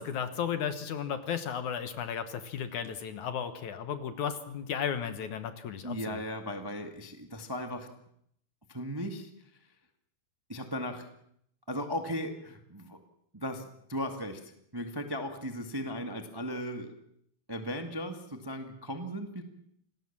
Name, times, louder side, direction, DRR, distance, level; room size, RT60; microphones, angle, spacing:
voice 1, 0.0-5.9, left 8 dB, 60° left, 10 dB, 2.3 m, -34 dB
voice 2, 5.8-7.9 8.7-9.3 10.5-11.1 11.7-13.0 13.3-16.9 17.5-19.4, equal, 15° right, 6 dB, 0.7 m, -37 dB
27.5 x 19.0 x 7.4 m, 0.70 s
omnidirectional pair, 4.4 m